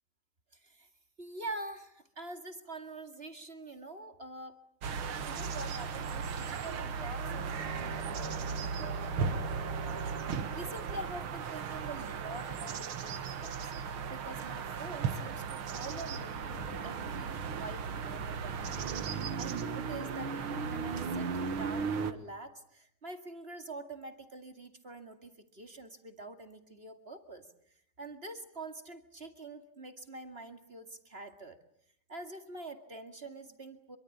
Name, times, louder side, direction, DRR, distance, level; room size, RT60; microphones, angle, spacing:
voice 1, 0.5-0.9 1.2-4.6 5.1-9.5 9.8-10.2 10.5-13.7 14.1-18.9 19.4-21.3 21.6-27.5 28.0-31.6 32.1-34.0, right 2 dB, 30° right, 7 dB, 2.3 m, -46 dB
sound 1, 4.8-22.1, right 5 dB, 85° right, 2.4 m, -36 dB
Bowed string instrument, 7.1-11.4, right 6 dB, 65° right, 4.3 m, -45 dB
26.5 x 24.0 x 8.6 m, 0.70 s
omnidirectional pair, 2.3 m